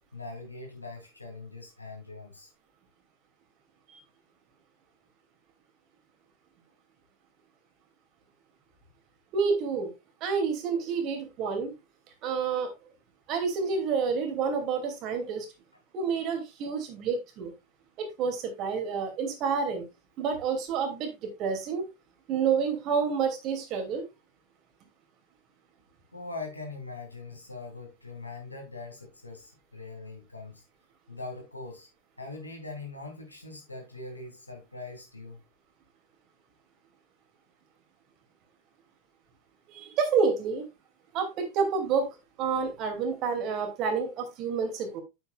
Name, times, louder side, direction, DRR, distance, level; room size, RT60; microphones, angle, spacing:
voice 1, 0.1-2.5 26.1-30.6 31.1-31.9 32.2-35.4, left 3 dB, 85° left, 3.1 m, -42 dB
voice 2, 9.3-9.9 10.2-11.7 12.2-12.7 13.3-15.5 15.9-17.5 18.0-19.9 20.2-21.8 22.3-24.0 39.7-40.7 41.1-45.0, right 5 dB, 35° right, 2.7 m, -29 dB
8.6 x 8.1 x 2.4 m
figure-of-eight pair, 90°, 0 cm